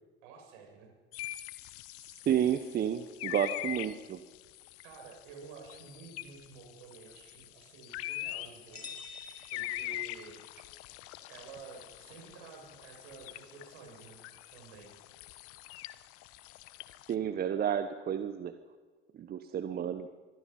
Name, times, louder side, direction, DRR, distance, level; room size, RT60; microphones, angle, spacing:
voice 1, 0.2-0.9 4.8-8.9 9.5-10.4 11.3-14.2 14.5-14.9, right 5 dB, 60° right, 2 dB, 7.5 m, -51 dB
sound 1, 1.1-17.1, left 16 dB, 50° left, 1.2 m, -44 dB
voice 2, 2.3-4.2 17.1-18.5 19.1-20.1, right 9 dB, 30° right, 10 dB, 1.1 m, -31 dB
sound 2, 8.7-10.5, left 5 dB, 90° left, 2.6 m, -48 dB
24.5 x 24.0 x 5.7 m, 1.4 s
figure-of-eight pair, 70°, 30 cm